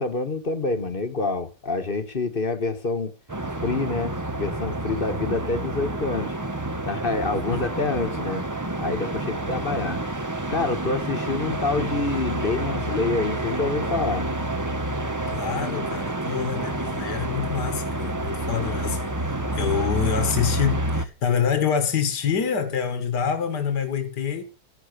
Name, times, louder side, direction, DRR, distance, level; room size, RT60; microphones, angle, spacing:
voice 1, 0.0-3.1 3.6-6.3 6.9-8.5 8.8-10.0 10.5-14.3, left 3 dB, 35° left, 1.4 m, -27 dB
sound 1, 3.3-21.1, right 1 dB, 15° right, 0.6 m, -28 dB
voice 2, 7.3-7.6 15.3-24.4, left 7 dB, 70° left, 2.2 m, -26 dB
13.5 x 11.0 x 6.6 m
omnidirectional pair, 1.8 m